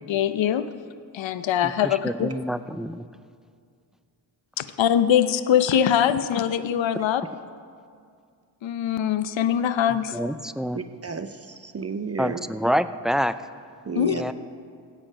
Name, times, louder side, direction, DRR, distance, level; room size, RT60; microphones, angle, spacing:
voice 1, 0.1-0.7 1.1-2.3 4.6-7.2 8.6-10.2 13.9-14.2, left 9 dB, 65° left, 12 dB, 0.8 m, -22 dB
voice 2, 1.6-3.0 10.1-10.8 12.2-13.3 14.1-14.3, equal, ahead, 12 dB, 0.3 m, -27 dB
voice 3, 10.7-12.4 13.9-14.2, right 5 dB, 30° right, 9 dB, 0.7 m, -32 dB
16.5 x 6.8 x 5.1 m, 2.2 s
supercardioid pair, 50°, 49 cm